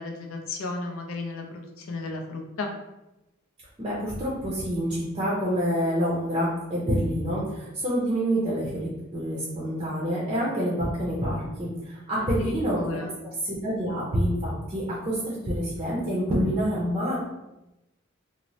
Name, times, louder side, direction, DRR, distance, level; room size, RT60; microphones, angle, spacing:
voice 1, 0.0-2.7 12.2-13.2, left 3 dB, 75° left, 2 dB, 0.5 m, -34 dB
voice 2, 3.8-12.8 13.4-17.2, equal, 25° right, -7 dB, 0.5 m, -27 dB
3.0 x 2.0 x 2.7 m, 0.96 s
head